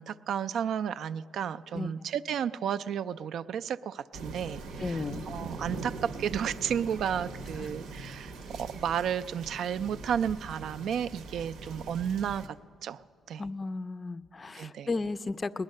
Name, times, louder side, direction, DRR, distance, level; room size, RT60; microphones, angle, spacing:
voice 1, 0.0-12.6 12.8-13.0 13.3-13.5 14.5-14.9, right 8 dB, 70° right, 13 dB, 0.3 m, -32 dB
sound 1, 4.1-12.5, right 3 dB, 90° right, 0.8 m, -42 dB
voice 2, 4.8-5.2 13.4-15.6, left 3 dB, 30° left, 14 dB, 0.4 m, -34 dB
19.5 x 10.5 x 6.5 m, 2.4 s
cardioid pair, 90°, 0 cm